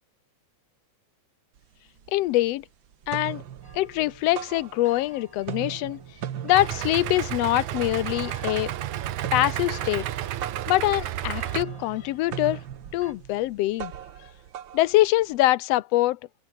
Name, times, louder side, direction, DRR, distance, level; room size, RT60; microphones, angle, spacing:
sound 1, 1.6-1.7 2.0-2.6 2.9-5.1 5.4-15.5, right 10 dB, 55° right, 1.5 m, -39 dB
voice 1, 2.1-2.6 3.1-3.4 3.7-6.0 6.4-8.7 9.3-10.0 10.7-12.6 12.9-13.9 14.7-16.2, left 16 dB, 80° left, 1.5 m, -24 dB
sound 2, 3.6-13.1, equal, 5° right, 6.5 m, -50 dB
Idling, 6.5-11.6, right 13 dB, 75° right, 2.5 m, -31 dB
open air
omnidirectional pair, 3.5 m